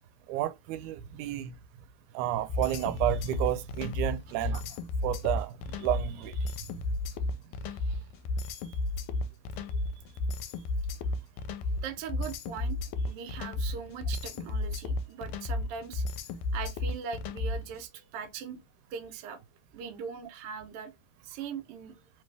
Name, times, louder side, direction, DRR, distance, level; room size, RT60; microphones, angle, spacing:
voice 1, 0.3-1.6 2.1-4.6 5.0-6.5, right 12 dB, 90° right, 2.1 m, -31 dB
sound 1, 2.5-17.7, left 2 dB, 80° left, 1.8 m, -32 dB
voice 2, 7.7-8.0 9.6-10.0 11.7-16.1 16.5-18.6 18.9-19.4 19.7-20.9 21.2-21.9, right 7 dB, 65° right, 1.6 m, -41 dB
4.3 x 3.2 x 3.3 m
omnidirectional pair, 3.4 m